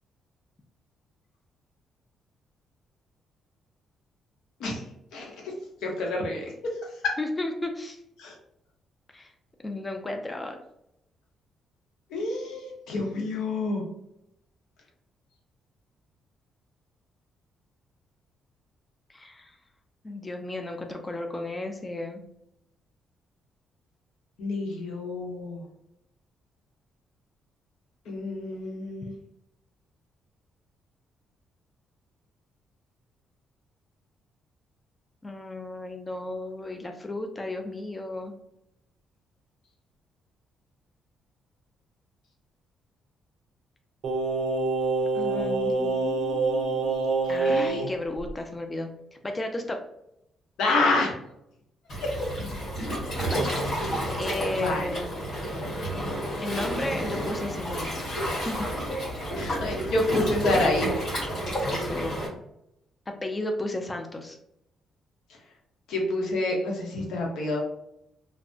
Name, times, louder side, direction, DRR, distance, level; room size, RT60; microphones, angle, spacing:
voice 1, 5.1-5.5 5.8-6.7 7.0-7.2 8.2-8.3 12.1-13.8 24.4-25.6 28.1-29.1 45.2-45.9 47.4-47.9 50.6-51.1 52.0-52.3 54.5-54.9 59.3-60.9 65.9-67.6, left 2 dB, 85° left, 0 dB, 0.8 m, -28 dB
voice 2, 7.2-8.0 9.1-9.3 9.6-10.6 19.1-19.6 20.0-22.3 35.2-38.3 45.1-47.0 47.3-48.9 49.2-49.8 53.2-53.5 54.2-55.2 56.4-58.0 58.2-58.7 61.7-62.2 63.1-64.4, left 2 dB, 20° left, 4 dB, 0.4 m, -34 dB
Singing, 44.0-47.9 48.2-48.3, right 3 dB, 65° right, 0.5 m, -26 dB
Waves surf, 51.9-62.3, equal, 55° left, 1.5 m, -30 dB
3.2 x 2.0 x 2.6 m, 0.81 s
cardioid pair, 90°, 0 cm